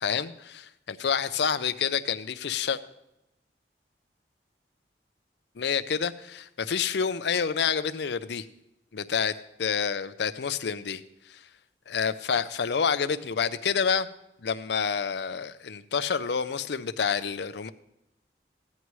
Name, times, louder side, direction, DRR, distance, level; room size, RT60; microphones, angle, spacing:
voice 1, 0.0-2.8 5.6-8.5 8.9-11.5 11.9-14.1 14.4-17.7, left 6 dB, 75° left, 14 dB, 0.5 m, -28 dB
15.5 x 9.6 x 3.1 m, 0.86 s
head